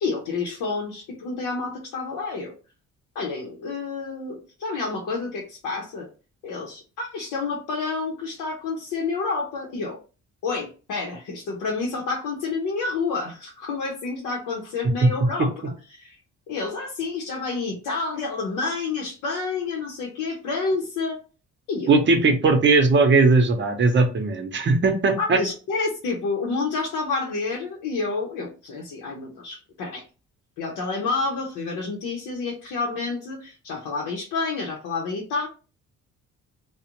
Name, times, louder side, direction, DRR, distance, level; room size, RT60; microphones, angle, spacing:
voice 1, 0.0-2.6 3.1-6.1 6.4-10.0 10.4-16.2 16.5-21.2 21.7-21.9 25.2-30.0 30.6-35.5, left 4 dB, 80° left, -1 dB, 0.7 m, -29 dB
voice 2, 21.9-25.4, right 3 dB, 40° right, 5 dB, 0.7 m, -18 dB
2.4 x 2.1 x 2.9 m, 0.34 s
cardioid pair, 90°, 30 cm